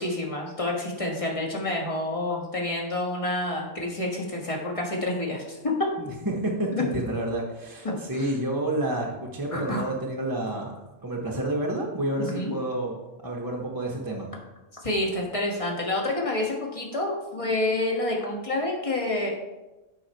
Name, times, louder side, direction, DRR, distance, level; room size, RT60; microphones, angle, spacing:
voice 1, 0.0-5.6 7.8-8.3 9.5-9.8 12.2-12.5 14.8-19.3, left 1 dB, 25° left, -1 dB, 1.6 m, -28 dB
voice 2, 6.0-13.0 13.2-14.3, right 1 dB, 20° right, -2 dB, 0.8 m, -29 dB
7.7 x 6.1 x 4.4 m, 1.1 s
omnidirectional pair, 1.3 m